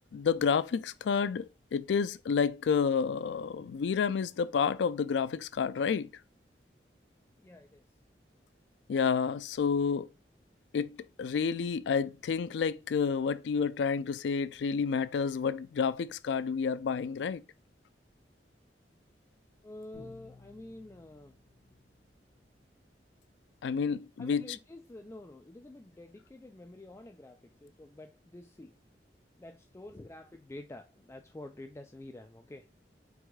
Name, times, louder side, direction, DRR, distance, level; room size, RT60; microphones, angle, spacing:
voice 1, 0.1-6.1 8.9-10.1 10.7-17.4 23.6-24.6, left 6 dB, 90° left, 0.3 m, -30 dB
voice 2, 7.4-7.8 19.6-21.3 24.2-28.7 29.4-32.7, left 1 dB, 15° left, 0.3 m, -48 dB
Bowed string instrument, 19.9-22.7, left 3 dB, 30° left, 1.5 m, -56 dB
4.7 x 3.6 x 2.3 m
head